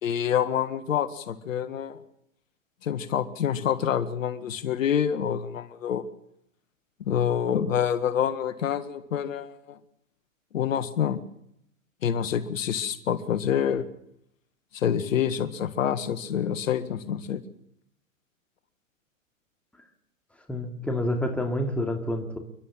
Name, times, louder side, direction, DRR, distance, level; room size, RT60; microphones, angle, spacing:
voice 1, 0.0-2.0 2.8-6.0 7.0-9.8 10.5-11.2 12.0-13.9 14.7-17.4, left 9 dB, 70° left, 11 dB, 1.8 m, -27 dB
voice 2, 20.5-22.4, left 1 dB, 5° left, 3 dB, 2.5 m, -28 dB
30.0 x 12.0 x 7.4 m, 0.76 s
hypercardioid pair, 130°, 40 cm